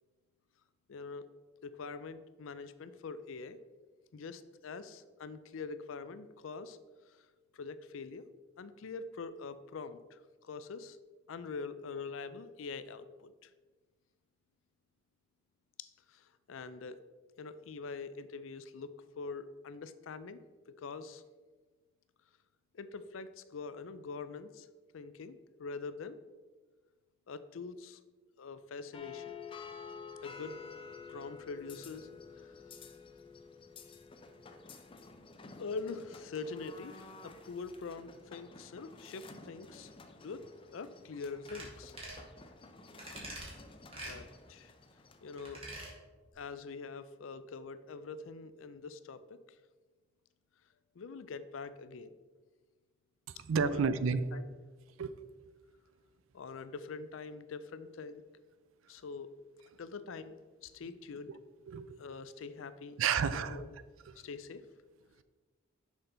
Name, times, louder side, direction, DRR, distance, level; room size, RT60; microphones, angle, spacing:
voice 1, 0.9-1.3 1.6-3.6 4.1-6.8 7.0-7.3 7.5-8.3 8.6-11.0 11.3-13.5 15.8-17.0 17.4-20.4 20.7-21.2 22.7-24.7 24.9-26.2 27.3-28.0 28.4-29.3 30.2-30.6 31.1-32.5 35.6-39.9 40.2-40.5 40.7-41.9 44.0-44.7 45.2-45.6 46.3-49.6 50.9-52.2 53.3-53.9 54.3-54.5 56.3-58.2 58.9-59.3 59.8-60.4 60.6-61.3 62.0-63.0 63.3-63.7 64.2-64.6, left 4 dB, 80° left, 13 dB, 0.4 m, -44 dB
sound 1, 28.9-45.6, left 5 dB, 25° left, 0.5 m, -51 dB
sound 2, 41.5-41.7 42.0-42.2 43.0-43.5 43.9-44.2 45.4-45.9 46.3-46.4, right 1 dB, 30° right, 1.8 m, -44 dB
voice 2, 53.5-54.3 55.0-55.1 61.7-62.0 63.0-63.6, right 5 dB, 80° right, 13 dB, 0.4 m, -30 dB
6.6 x 5.8 x 3.9 m, 1.4 s
head